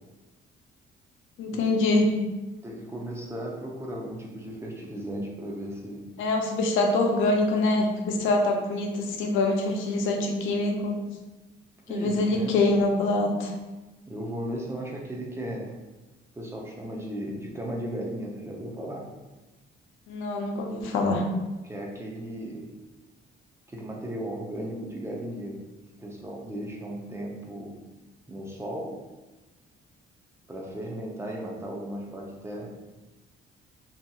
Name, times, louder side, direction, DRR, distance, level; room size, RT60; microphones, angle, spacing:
voice 1, 1.4-2.1 6.2-11.0 11.9-13.5 20.1-21.2, left 2 dB, 90° left, 2 dB, 0.5 m, -25 dB
voice 2, 2.6-6.0 11.9-12.5 14.0-15.7 16.3-19.1 21.6-22.7 23.7-25.6 26.0-27.8 28.3-29.0 30.5-32.7, right 1 dB, 15° right, -2 dB, 0.5 m, -36 dB
2.8 x 2.6 x 2.3 m, 1.1 s
cardioid pair, 90°, 20 cm